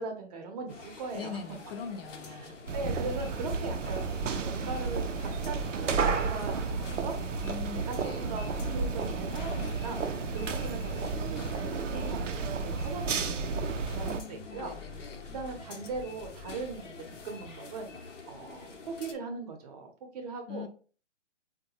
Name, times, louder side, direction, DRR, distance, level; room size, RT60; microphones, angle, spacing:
voice 1, 0.0-1.4 2.3-7.2 7.5-13.5 13.9-14.7 15.0-20.7, right 3 dB, 35° right, 0.7 m, -40 dB
sound 1, 0.7-19.1, left 3 dB, 85° left, 0.8 m, -47 dB
voice 2, 1.1-2.6 7.4-8.3 14.1-15.2 20.5-20.7, left 6 dB, 55° left, 0.6 m, -42 dB
sound 2, 2.7-14.2, right 4 dB, 90° right, 0.5 m, -32 dB
sound 3, 8.5-17.4, left 5 dB, 5° left, 0.4 m, -51 dB
3.8 x 2.2 x 2.8 m
hypercardioid pair, 135°, 36 cm